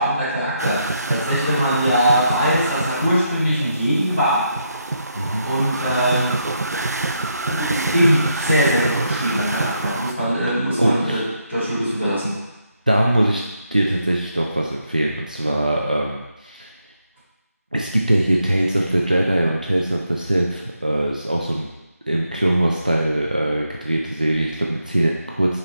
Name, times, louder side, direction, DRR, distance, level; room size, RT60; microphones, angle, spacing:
voice 1, 0.0-4.4 5.4-6.3 7.5-11.2 11.5-12.4, equal, 5° left, -17 dB, 0.7 m, -21 dB
sound 1, 0.6-10.1, right 2 dB, 85° right, 0.5 m, -26 dB
voice 2, 5.1-5.5 10.8-11.3 12.9-13.4 13.7-16.7 17.7-21.7 22.1-25.6, right 1 dB, 30° right, -1 dB, 0.4 m, -21 dB
5.5 x 4.3 x 4.0 m, 1.0 s
figure-of-eight pair, 180°, 9 cm